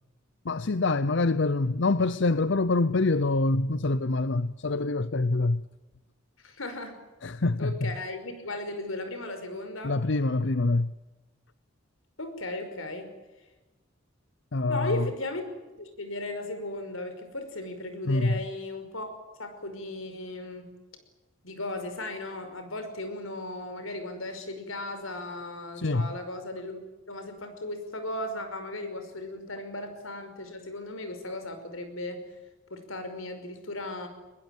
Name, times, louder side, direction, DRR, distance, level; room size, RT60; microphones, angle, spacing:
voice 1, 0.4-5.7 7.2-7.9 9.8-11.0 14.5-15.1 18.1-18.4 25.8-26.1, left 3 dB, 60° left, 0.7 m, -25 dB
voice 2, 6.4-7.0 7.6-9.9 12.2-13.1 14.7-15.5 15.8-20.7 21.4-26.8 27.1-32.2 32.7-34.1, left 2 dB, 85° left, 5.4 m, -36 dB
21.5 x 21.5 x 9.1 m
head